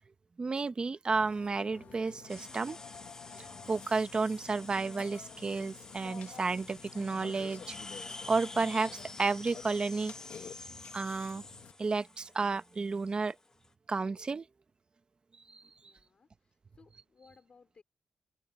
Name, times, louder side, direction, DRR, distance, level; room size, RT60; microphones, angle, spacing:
voice 1, 0.4-2.8 3.4-7.8 8.3-8.9 9.2-10.1 10.9-11.4 11.8-13.3 13.9-14.5 15.5-15.6, right 4 dB, 40° right, 1.0 m, -32 dB
Burping eructation, 1.1-11.7, left 8 dB, 85° left, 1.4 m, -50 dB
sound 1, 2.3-13.7, left 2 dB, 25° left, 0.9 m, -49 dB
voice 2, 15.8-17.8, left 5 dB, 50° left, 4.9 m, -62 dB
wide cardioid pair, 100°, 2 cm